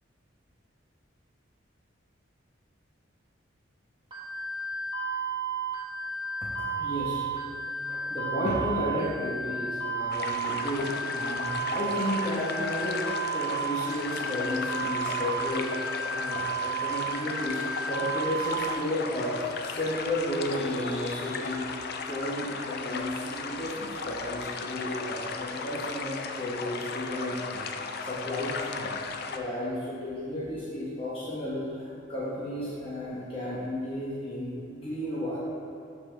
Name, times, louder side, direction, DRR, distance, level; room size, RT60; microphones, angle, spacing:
sound 1, 4.1-18.7, right 4 dB, 25° right, 1.2 m, -33 dB
voice 1, 6.8-7.3 7.9-13.0 13.3-21.6 22.0-27.7 28.0-28.9 29.3-35.4, left 1 dB, 30° left, -9 dB, 1.1 m, -33 dB
sound 2, 10.1-29.4, left 4 dB, 50° left, 0.4 m, -36 dB
11.5 x 4.2 x 3.4 m, 2.6 s
head